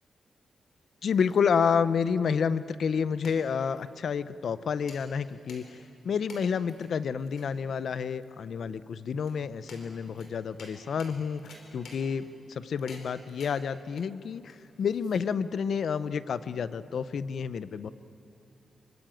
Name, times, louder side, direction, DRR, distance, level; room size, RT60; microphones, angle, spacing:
sound 1, 0.7-15.6, left 3 dB, 90° left, 4.7 m, -53 dB
voice 1, 1.0-5.8 6.0-17.9, left 6 dB, 60° left, 15 dB, 0.7 m, -29 dB
26.5 x 24.0 x 9.0 m, 2.6 s
wide cardioid pair, 180°, 0 cm